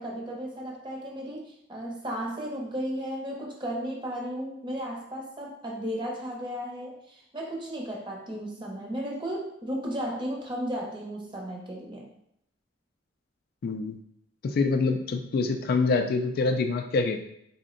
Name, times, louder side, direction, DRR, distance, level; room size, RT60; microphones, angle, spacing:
voice 1, 0.0-12.1, equal, 25° right, -1 dB, 0.7 m, -34 dB
voice 2, 13.6-14.0 14.4-17.2, left 4 dB, 55° left, 6 dB, 0.3 m, -25 dB
3.7 x 2.1 x 3.7 m, 0.74 s
head